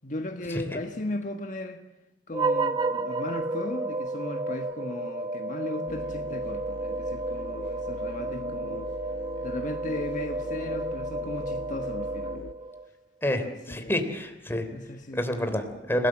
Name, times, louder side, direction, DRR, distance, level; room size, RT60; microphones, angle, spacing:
voice 1, 0.0-1.8 2.3-9.2 9.4-12.4 13.2-14.0 14.7-15.6, left 1 dB, 45° left, 5 dB, 1.5 m, -36 dB
sound 1, 2.3-12.9, right 2 dB, 25° right, 1.2 m, -32 dB
sound 2, 5.9-12.5, left 2 dB, 80° left, 1.2 m, -42 dB
voice 2, 13.2-14.7 15.1-16.1, left 1 dB, 15° left, 7 dB, 3.2 m, -28 dB
29.5 x 18.0 x 7.4 m, 1.1 s
head